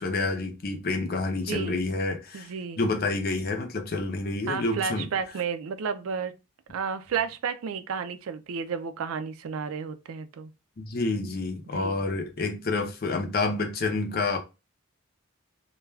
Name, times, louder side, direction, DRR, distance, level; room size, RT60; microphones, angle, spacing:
voice 1, 0.0-2.5 2.8-5.1 10.8-14.4, left 3 dB, 45° left, 0.5 m, -28 dB
voice 2, 1.5-1.8 2.3-2.8 4.5-6.3 6.7-10.5 11.7-12.0, right 6 dB, 80° right, 0.4 m, -32 dB
2.3 x 2.2 x 3.1 m
head